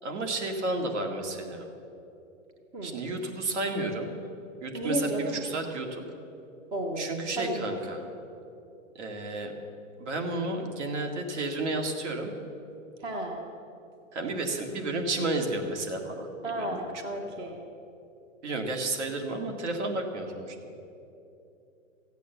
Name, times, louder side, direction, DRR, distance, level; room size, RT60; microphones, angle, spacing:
voice 1, 0.0-1.7 2.8-4.1 4.6-6.0 7.0-8.1 8.9-9.5 10.0-12.3 14.1-16.3 16.6-16.8 17.1-17.5 18.4-20.7, right 2 dB, 60° right, 4 dB, 2.1 m, -32 dB
voice 2, 4.7-5.4 6.7-7.1 7.4-7.8 13.0-13.5 16.4-17.6, right 1 dB, 10° right, 2 dB, 0.6 m, -32 dB
15.0 x 8.3 x 8.1 m, 2.8 s
hypercardioid pair, 155°, 39 cm